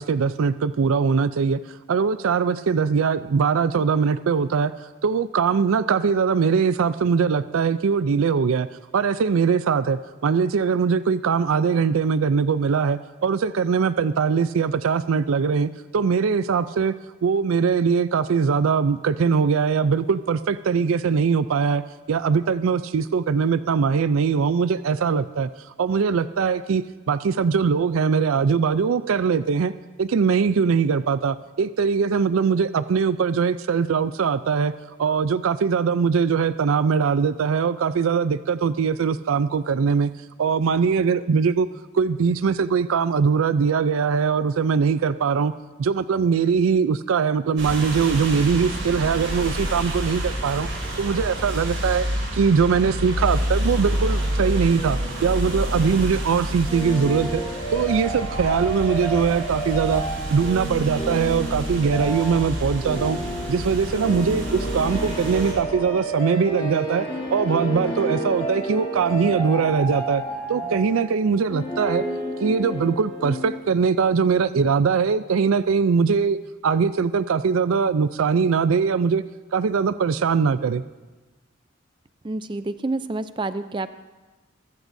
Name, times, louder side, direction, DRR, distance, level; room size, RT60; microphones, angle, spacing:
voice 1, 0.0-1.6 1.9-4.7 5.0-8.7 8.9-16.9 17.2-21.8 22.1-25.5 25.8-29.7 30.0-34.7 35.0-40.1 40.4-41.7 41.9-45.5 45.8-50.7 51.0-52.1 52.3-57.4 57.7-60.0 60.3-63.2 63.5-67.1 67.3-70.2 70.5-72.0 72.4-76.4 76.6-79.2 79.5-80.8, right 5 dB, 90° right, 14 dB, 0.4 m, -21 dB
sound 1, 47.6-65.5, equal, 70° right, 5.6 m, -29 dB
sound 2, 56.7-73.6, right 2 dB, 25° left, 4.7 m, -30 dB
voice 2, 82.2-83.9, right 2 dB, 25° right, 12 dB, 0.4 m, -28 dB
21.5 x 14.5 x 2.6 m, 1.2 s
head